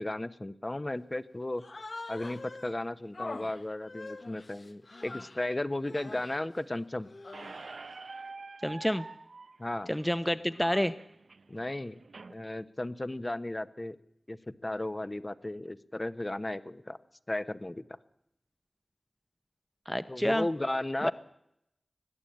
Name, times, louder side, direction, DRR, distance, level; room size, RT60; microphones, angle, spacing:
voice 1, 0.0-1.6 2.1-7.1 9.6-9.9 11.5-12.0 12.3-14.0 14.3-14.4 14.6-17.0 17.3-17.8 20.1-21.1, left 1 dB, 30° left, 12 dB, 1.1 m, -35 dB
Human voice, 1.6-2.8 3.1-5.5 5.8-6.5 7.0-7.8, left 3 dB, 65° left, 1.4 m, -44 dB
Squeak, 7.3-12.3, right 4 dB, 85° right, 0.7 m, -47 dB
voice 2, 8.6-9.0 9.9-10.9 19.9-20.5 21.0-21.1, equal, 5° left, 12 dB, 0.8 m, -28 dB
21.0 x 14.0 x 8.8 m, 0.79 s
wide cardioid pair, 50°, 0 cm